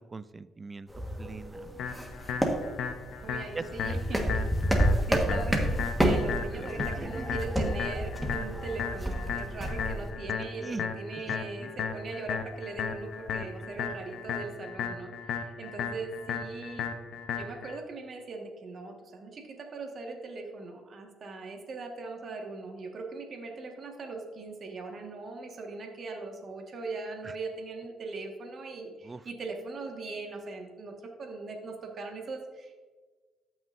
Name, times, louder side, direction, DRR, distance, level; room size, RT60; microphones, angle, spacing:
voice 1, 0.1-0.9 1.2-1.9 3.5-4.0 5.1-5.2 6.6-7.4 10.5-10.8 11.6-11.7 27.2-27.3 29.0-29.2, right 3 dB, 25° right, 15 dB, 0.4 m, -40 dB
sound 1, 0.9-10.1, right 1 dB, 5° right, 1.5 m, -30 dB
sound 2, 1.8-17.8, left 6 dB, 75° left, 0.8 m, -36 dB
voice 2, 3.2-4.5 5.1-16.9 17.3-32.8, right 3 dB, 50° right, 2 dB, 1.7 m, -40 dB
14.0 x 6.1 x 2.7 m, 1.4 s
cardioid pair, 85°, 0 cm